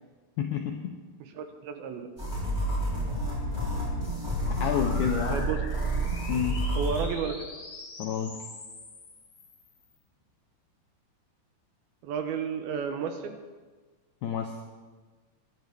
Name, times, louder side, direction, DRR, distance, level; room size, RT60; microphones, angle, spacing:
voice 1, 0.4-1.0 4.5-5.5 6.3-6.7 8.0-8.4 14.2-14.7, left 8 dB, 85° left, 3 dB, 1.8 m, -30 dB
voice 2, 1.4-2.1 5.3-5.6 6.8-7.4 12.0-13.4, right 6 dB, 80° right, 7 dB, 2.7 m, -32 dB
sound 1, 2.2-7.1, right 1 dB, 5° right, 3.2 m, -29 dB
sound 2, 4.4-9.9, left 2 dB, 50° left, 2.9 m, -43 dB
21.0 x 11.5 x 3.5 m, 1.4 s
omnidirectional pair, 4.6 m